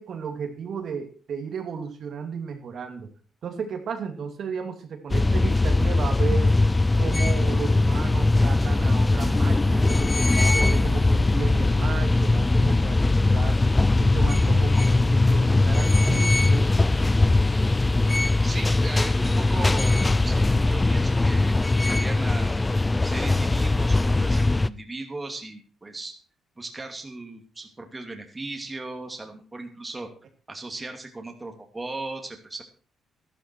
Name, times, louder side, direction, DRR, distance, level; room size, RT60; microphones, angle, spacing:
voice 1, 0.0-3.1 3.4-6.5 7.0-13.6 14.0-16.7, right 6 dB, 60° right, 4 dB, 2.6 m, -34 dB
sound 1, 5.1-24.7, left 2 dB, 15° left, 0.6 m, -20 dB
voice 2, 18.4-22.6 23.0-26.1 26.6-30.1 30.5-32.6, right 2 dB, 20° right, 4 dB, 2.5 m, -37 dB
13.0 x 12.0 x 4.7 m, 0.40 s
cardioid pair, 90°, 0 cm